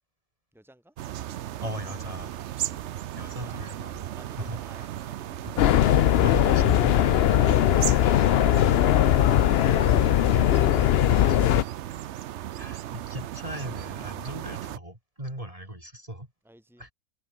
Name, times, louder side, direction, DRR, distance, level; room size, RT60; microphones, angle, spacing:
voice 1, 0.5-0.9 4.1-5.6 16.4-16.9, right 1 dB, ahead, 4.4 m, -55 dB
sound 1, 1.0-14.8, right 12 dB, 60° right, 0.7 m, -36 dB
voice 2, 1.6-2.5 3.1-4.1 4.4-4.6 5.4-5.5 6.1-7.3 7.6-7.7 8.1-8.3 11.1-11.7 12.6-16.3 16.8-16.9, right 1 dB, 20° right, 5.1 m, -38 dB
sound 2, 5.6-11.6, left 11 dB, 65° left, 0.6 m, -20 dB
omnidirectional pair, 1.6 m